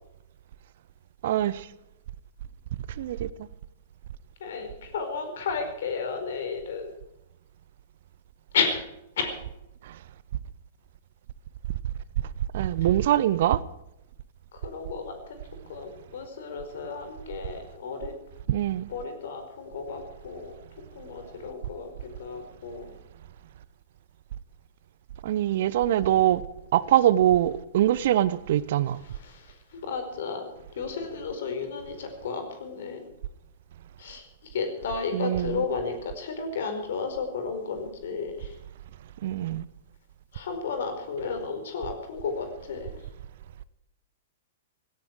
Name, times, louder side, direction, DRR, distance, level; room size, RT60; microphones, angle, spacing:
voice 1, 1.2-1.7 3.0-3.5 9.8-10.0 12.5-13.6 18.5-18.9 25.2-26.4 26.7-29.0 35.1-35.6 39.2-39.6, right 12 dB, 50° right, 19 dB, 0.8 m, -23 dB
voice 2, 4.4-6.9 8.5-8.8 9.2-9.4 14.5-15.4 15.7-18.1 18.9-20.5 20.9-22.9 29.0-33.1 34.0-38.6 40.3-43.1, left 5 dB, 55° left, 6 dB, 4.5 m, -33 dB
17.0 x 17.0 x 4.7 m, 0.86 s
figure-of-eight pair, 105°, 0 cm